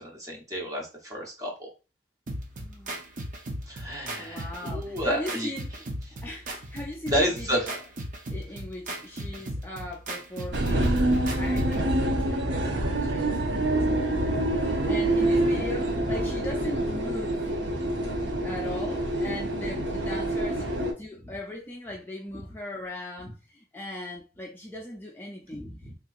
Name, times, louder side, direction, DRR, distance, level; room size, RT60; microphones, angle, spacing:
voice 1, 0.0-1.7 3.7-5.5 7.1-7.7 14.3-15.0 17.7-17.8 18.1-18.3 25.5-25.9, equal, 20° right, 0.9 m, -31 dB
sound 1, 2.3-11.9, right 1 dB, 45° right, 0.6 m, -37 dB
voice 2, 2.6-3.1 4.2-5.9 6.2-7.9 8.3-17.4 18.4-25.7, left 1 dB, 10° left, 0.5 m, -39 dB
sound 2, 10.5-20.9, right 1 dB, 85° right, 0.7 m, -26 dB
3.6 x 2.8 x 2.4 m
head